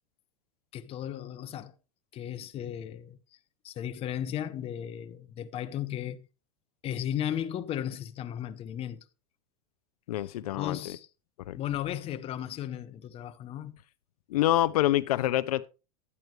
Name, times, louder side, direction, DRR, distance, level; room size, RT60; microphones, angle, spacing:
voice 1, 0.7-1.7 2.1-3.2 3.6-6.2 6.8-9.0 10.2-11.1 11.5-13.8, left 10 dB, 30° left, 0.8 m, -35 dB
voice 2, 10.1-10.9 11.5-11.6 14.3-15.7, left 14 dB, 85° left, 0.5 m, -26 dB
11.0 x 9.2 x 3.2 m
supercardioid pair, 130°, 19 cm